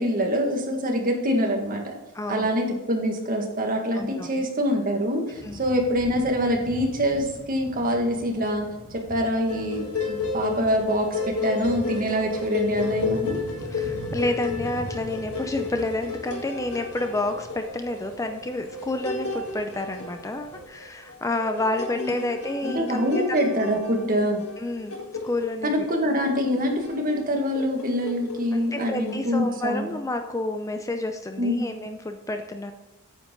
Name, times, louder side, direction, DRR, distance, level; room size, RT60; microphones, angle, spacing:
voice 1, 0.0-1.9 2.3-8.7 9.1-13.4 21.9-22.3 22.6-24.4 25.6-29.9 31.4-31.7, equal, 40° right, 2 dB, 1.8 m, -25 dB
voice 2, 2.1-2.5 3.9-4.5 5.4-5.6 13.7-23.4 24.6-24.9 25.2-25.9 28.5-32.7, left 2 dB, 15° left, 6 dB, 0.5 m, -29 dB
sound 1, 5.3-20.6, equal, 60° right, 2.4 m, -42 dB
sound 2, 9.5-29.3, left 4 dB, 85° left, 1.6 m, -33 dB
9.3 x 7.8 x 3.8 m, 1.0 s
head